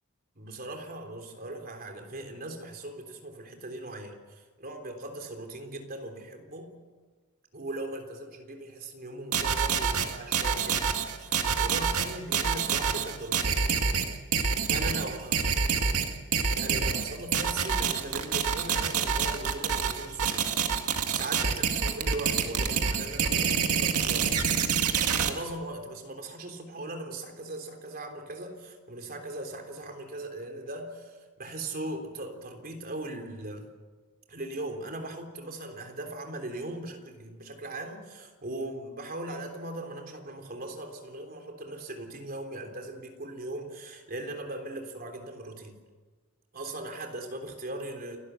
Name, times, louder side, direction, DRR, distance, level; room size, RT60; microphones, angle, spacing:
voice 1, 0.4-6.8 7.5-13.7 14.6-15.6 16.5-20.4 21.1-24.4 25.2-33.7 34.3-45.8 46.5-48.2, right 2 dB, 40° right, 4 dB, 3.5 m, -39 dB
sound 1, 9.3-25.3, right 6 dB, 85° right, 1.9 m, -27 dB
29.0 x 12.0 x 8.2 m, 1.4 s
head